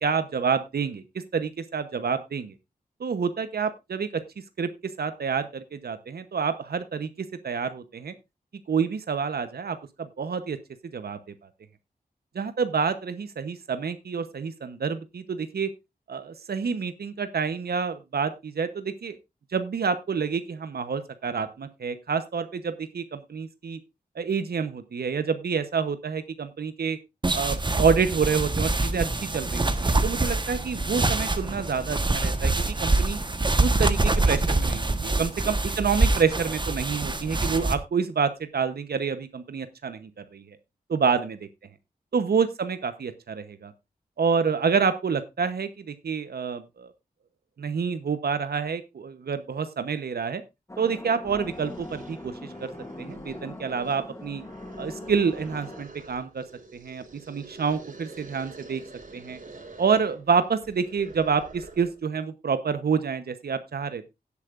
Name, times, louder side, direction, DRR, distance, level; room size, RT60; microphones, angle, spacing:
voice 1, 0.0-1.0 1.3-2.5 3.0-4.2 4.6-4.7 5.0-8.1 8.7-10.6 10.9-11.2 12.3-15.7 16.1-19.2 19.5-23.8 24.1-27.0 27.3-33.2 33.6-40.6 40.9-41.5 42.1-43.7 44.2-46.9 47.6-50.4 50.8-52.7 53.0-54.4 54.8-56.4 56.7-58.8 59.1-59.4 59.8-64.1, right 6 dB, 80° right, 11 dB, 0.9 m, -28 dB
sound 1, 27.2-37.7, right 2 dB, 30° right, 1.2 m, -25 dB
sound 2, 50.7-55.8, left 2 dB, 20° left, 0.8 m, -41 dB
sound 3, 51.2-62.0, right 3 dB, 55° right, 3.3 m, -47 dB
17.0 x 8.3 x 2.5 m, 0.24 s
wide cardioid pair, 75°, 16 cm